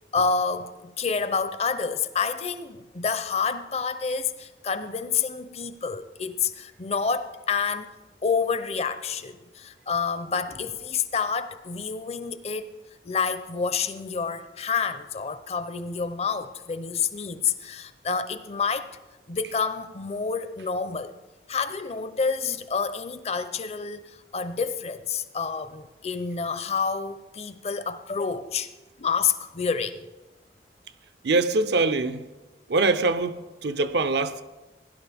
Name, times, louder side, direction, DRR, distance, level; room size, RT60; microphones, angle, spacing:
voice 1, 0.1-7.9 8.2-12.7 13.0-18.9 19.3-21.1 21.5-28.7 29.0-30.0, left 5 dB, 35° left, 0.5 m, -28 dB
voice 2, 31.2-32.2 32.7-34.4, right 3 dB, 75° right, 0.6 m, -23 dB
16.5 x 11.0 x 3.5 m
head